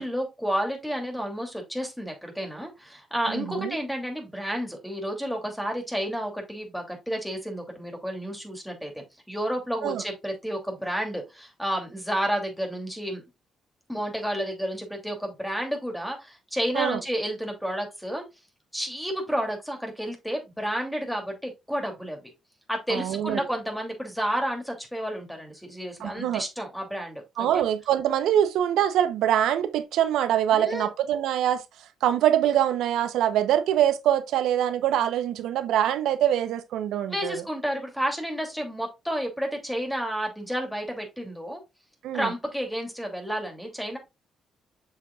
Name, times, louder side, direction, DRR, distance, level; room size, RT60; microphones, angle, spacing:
voice 1, 0.0-13.2 13.9-18.2 18.7-22.2 22.7-27.6 30.5-30.9 37.1-41.6 42.1-44.0, equal, ahead, 2.8 m, -31 dB
voice 2, 3.3-3.8 9.8-10.0 16.7-17.0 22.9-23.4 26.0-26.4 27.4-31.6 32.0-37.3 42.0-42.3, right 11 dB, 85° right, 0.8 m, -24 dB
7.2 x 7.2 x 2.4 m
cardioid pair, 90°, 0 cm